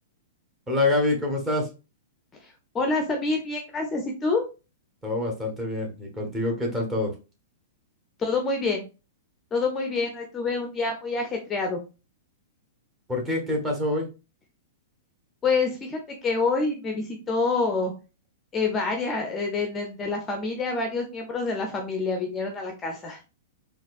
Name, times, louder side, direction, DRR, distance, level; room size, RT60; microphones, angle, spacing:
voice 1, 0.7-1.7 5.0-7.1 13.1-14.1, left 2 dB, 15° right, -1 dB, 1.3 m, -26 dB
voice 2, 2.7-4.4 8.2-8.8 9.5-11.8 15.4-17.9 18.5-23.2, left 3 dB, 20° left, 3 dB, 0.7 m, -27 dB
4.1 x 2.5 x 2.5 m, 0.31 s
figure-of-eight pair, 105°, 0 cm